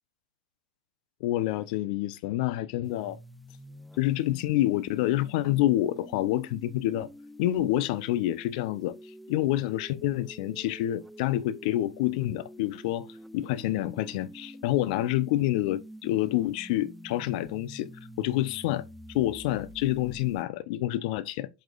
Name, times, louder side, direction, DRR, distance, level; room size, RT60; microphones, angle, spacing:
voice 1, 1.2-3.2 4.0-7.1 7.4-9.0 9.3-13.1 13.3-17.9 18.2-18.8 19.1-21.5, left 14 dB, 60° left, 0.7 m, -27 dB
sound 1, 2.8-20.4, equal, ahead, 0.6 m, -47 dB
8.5 x 5.9 x 2.5 m
hypercardioid pair, 100°, 5 cm